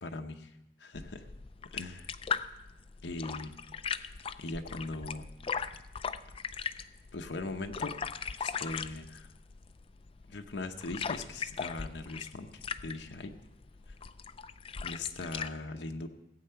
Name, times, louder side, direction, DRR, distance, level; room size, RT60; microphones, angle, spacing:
voice 1, 0.0-1.3 1.7-2.1 3.0-3.6 4.4-5.3 7.1-7.9 8.4-9.3 10.3-13.3 14.8-16.1, left 2 dB, 80° left, 5 dB, 0.8 m, -40 dB
fish in river, 0.9-15.5, left 6 dB, 30° left, 0.4 m, -39 dB
15.5 x 8.6 x 5.7 m, 0.90 s
head